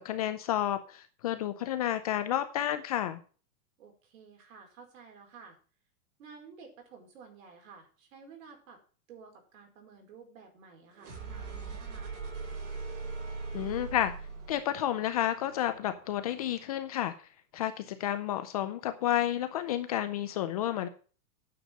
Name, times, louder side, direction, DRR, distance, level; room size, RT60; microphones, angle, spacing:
voice 1, 0.0-3.2 13.5-14.1 14.5-17.1 17.5-20.9, left 12 dB, 25° left, 10 dB, 0.5 m, -31 dB
voice 2, 3.8-5.6 6.2-8.8 9.1-12.2, right 5 dB, 60° right, 2 dB, 4.9 m, -52 dB
sound 1, 10.9-16.8, right 4 dB, 90° right, 5.5 m, -41 dB
9.4 x 6.5 x 7.5 m, 0.39 s
supercardioid pair, 160°, 44 cm